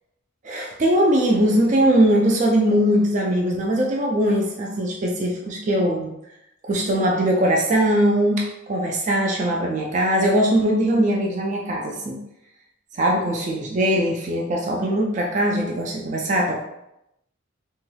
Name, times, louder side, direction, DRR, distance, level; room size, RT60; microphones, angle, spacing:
voice 1, 0.4-6.1 6.6-12.2 13.0-16.6, right 1 dB, 35° right, 0 dB, 0.3 m, -21 dB
3.0 x 2.3 x 3.1 m, 0.85 s
head